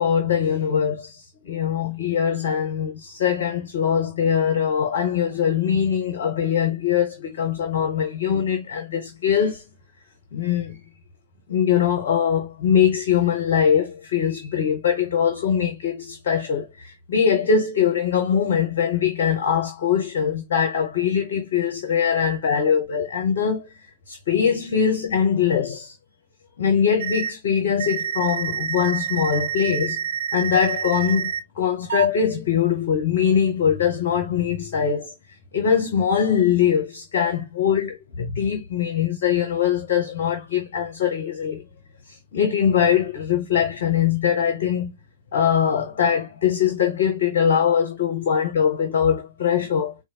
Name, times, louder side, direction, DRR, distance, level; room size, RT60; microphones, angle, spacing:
voice 1, 0.0-9.6 10.3-10.8 11.5-23.7 24.1-25.9 26.6-30.0 30.3-35.1 35.5-41.6 42.1-44.9 45.3-49.9, left 8 dB, 50° left, 0.9 m, -22 dB
sound 1, 27.0-27.3 27.8-31.4 31.9-32.1, right 8 dB, 60° right, 0.4 m, -27 dB
4.4 x 2.3 x 2.9 m
figure-of-eight pair, 110°, 0 cm